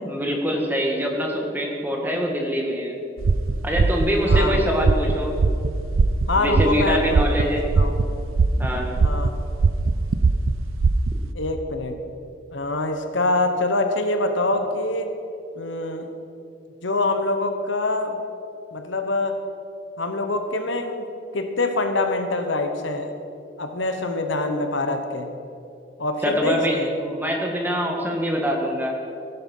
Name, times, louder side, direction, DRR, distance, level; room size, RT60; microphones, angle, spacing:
voice 1, 0.0-3.0 3.6-5.4 6.4-7.6 8.6-9.0 26.2-29.0, equal, 10° right, 0 dB, 1.7 m, -24 dB
Real heartbeat sound faster, 3.2-11.3, right 3 dB, 85° right, 0.5 m, -21 dB
voice 2, 4.3-4.6 6.3-7.2 7.8-7.9 9.0-9.3 11.3-12.0 12.5-15.1 15.6-16.1 16.8-18.2 18.7-19.4 20.0-21.1 21.3-23.1 23.6-25.3 26.0-26.9, left 2 dB, 70° left, 6 dB, 1.2 m, -25 dB
15.5 x 11.5 x 5.5 m, 2.7 s
head